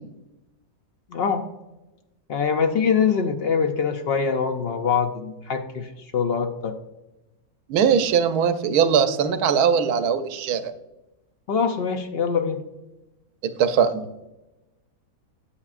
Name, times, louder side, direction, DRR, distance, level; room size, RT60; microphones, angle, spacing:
voice 1, 1.1-1.4 2.3-6.7 11.5-12.6, left 6 dB, 65° left, 6 dB, 0.6 m, -23 dB
voice 2, 7.7-10.7 13.4-14.1, right 7 dB, 85° right, 10 dB, 1.2 m, -20 dB
8.6 x 8.1 x 2.4 m, 1.0 s
omnidirectional pair, 1.6 m